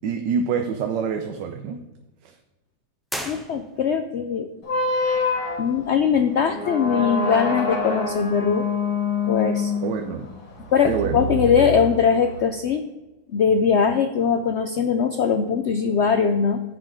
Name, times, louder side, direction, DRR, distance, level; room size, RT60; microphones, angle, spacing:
voice 1, 0.0-1.8 2.2-2.3 9.8-10.3 10.8-11.2, right 6 dB, 85° right, 5 dB, 1.4 m, -26 dB
sound 1, 3.0-4.1, equal, ahead, 0.3 m, -35 dB
voice 2, 3.3-4.5 5.6-8.6 9.2-9.7 10.7-12.9 13.3-16.6, left 6 dB, 80° left, 7 dB, 0.6 m, -21 dB
sound 2, 4.6-12.4, left 3 dB, 65° left, 1.8 m, -26 dB
15.0 x 5.6 x 3.7 m, 1.1 s
omnidirectional pair, 1.8 m